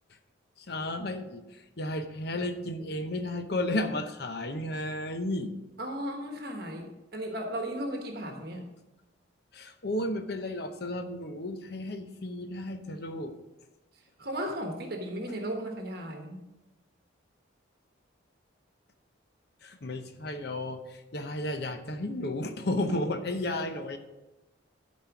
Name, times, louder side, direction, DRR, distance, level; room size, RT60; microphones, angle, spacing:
voice 1, 0.6-5.5 9.5-13.3 19.6-24.0, left 1 dB, 55° left, 7 dB, 0.8 m, -33 dB
voice 2, 5.8-8.7 14.2-16.4, right 1 dB, 55° right, 2 dB, 1.2 m, -35 dB
11.5 x 4.3 x 5.9 m, 1.0 s
head